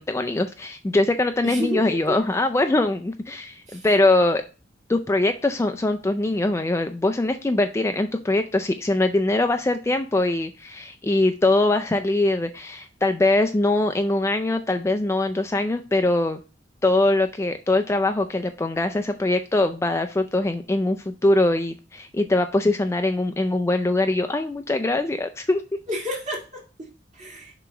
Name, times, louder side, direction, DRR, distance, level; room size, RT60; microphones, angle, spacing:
voice 1, 0.0-4.4 4.9-16.4 16.8-25.6, left 2 dB, 15° left, 8 dB, 0.3 m, -22 dB
voice 2, 1.4-2.2 3.7-3.9 25.9-27.6, equal, 40° right, -2 dB, 2.1 m, -31 dB
6.9 x 3.0 x 4.6 m, 0.33 s
head